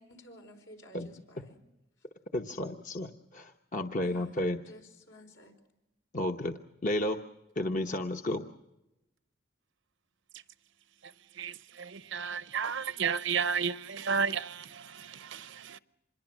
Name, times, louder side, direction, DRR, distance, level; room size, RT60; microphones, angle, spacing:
voice 1, 0.0-1.6 4.0-4.4 4.7-5.5, equal, 80° left, 4.9 m, -53 dB
voice 2, 2.3-4.6 6.1-7.2 7.6-8.4, left 1 dB, 45° left, 1.0 m, -32 dB
voice 3, 11.0-15.8, right 6 dB, 70° right, 0.7 m, -33 dB
26.5 x 21.5 x 6.2 m
head